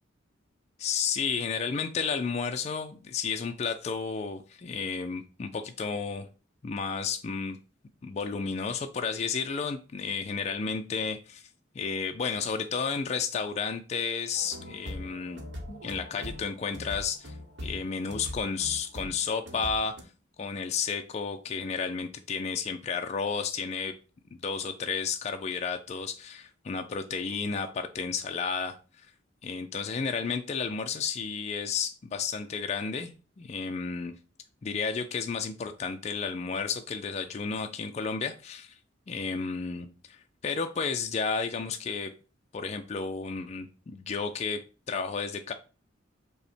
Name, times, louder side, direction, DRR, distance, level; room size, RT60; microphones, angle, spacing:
voice 1, 0.8-6.3 6.6-7.6 8.0-11.4 11.7-15.4 15.7-17.4 17.6-20.0 20.4-23.9 24.4-28.8 29.4-34.1 34.6-38.8 39.1-42.1 42.5-45.5, left 5 dB, 35° left, 6 dB, 0.3 m, -32 dB
sound 1, 14.3-20.0, left 1 dB, 65° right, 0.9 m, -41 dB
5.4 x 2.1 x 4.2 m, 0.34 s
head